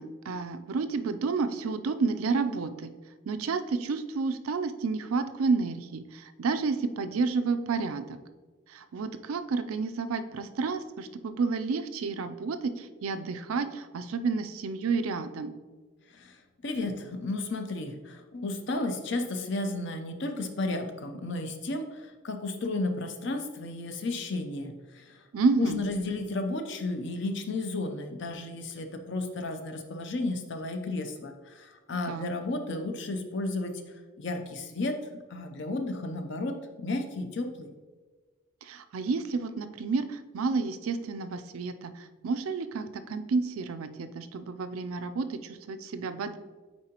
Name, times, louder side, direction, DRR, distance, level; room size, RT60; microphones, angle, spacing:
voice 1, 0.0-2.9 3.3-8.2 8.7-15.5 25.3-25.8 32.1-32.3 38.6-46.4, right 4 dB, 80° right, 10 dB, 0.4 m, -30 dB
voice 2, 16.6-25.1 25.6-33.8 34.2-35.0 35.3-37.7, left 2 dB, 55° left, 6 dB, 0.6 m, -33 dB
8.7 x 3.8 x 2.9 m, 1.4 s
head